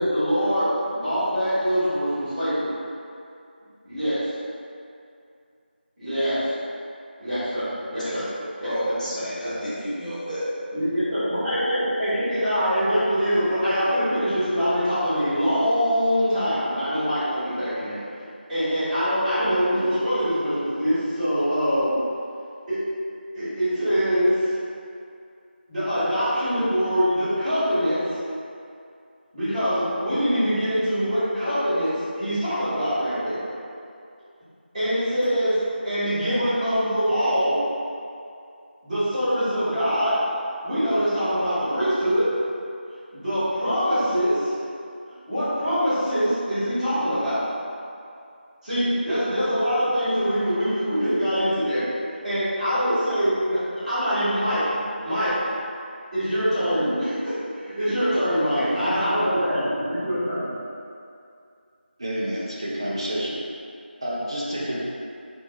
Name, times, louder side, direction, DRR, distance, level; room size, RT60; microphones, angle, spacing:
voice 1, 0.0-2.7 3.8-4.2 6.0-6.4 7.2-8.2 8.6-8.7 9.1-9.5 10.7-18.0 18.5-21.9 22.7-22.8 23.3-24.4 25.7-28.0 29.3-33.4 34.7-35.6 35.8-37.6 38.8-40.2 40.6-42.3 43.1-44.5 45.3-47.4 48.6-51.9 52.2-54.6 55.0-55.4 56.1-59.6 59.9-60.5, equal, 5° right, -29 dB, 1.4 m, -24 dB
voice 2, 7.8-10.8, equal, 45° left, -11 dB, 1.1 m, -31 dB
voice 3, 58.9-60.1 62.0-63.4 64.0-64.8, equal, 25° right, -6 dB, 0.4 m, -30 dB
3.9 x 2.6 x 2.5 m, 2.4 s
figure-of-eight pair, 170°, 6 cm